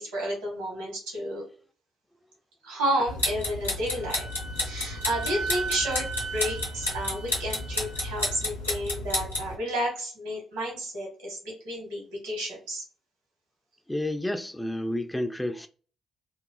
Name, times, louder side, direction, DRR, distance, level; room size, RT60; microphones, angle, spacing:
voice 1, 0.0-1.4 2.6-4.3 4.6-12.8, equal, 75° right, 1.2 m, -31 dB
sound 1, 3.1-9.5, left 2 dB, 85° left, 0.6 m, -31 dB
Wind instrument woodwind instrument, 4.0-8.4, right 4 dB, 45° right, 0.6 m, -37 dB
voice 2, 13.9-15.7, left 1 dB, 10° left, 0.3 m, -30 dB
3.0 x 2.3 x 2.3 m
figure-of-eight pair, 45°, 0 cm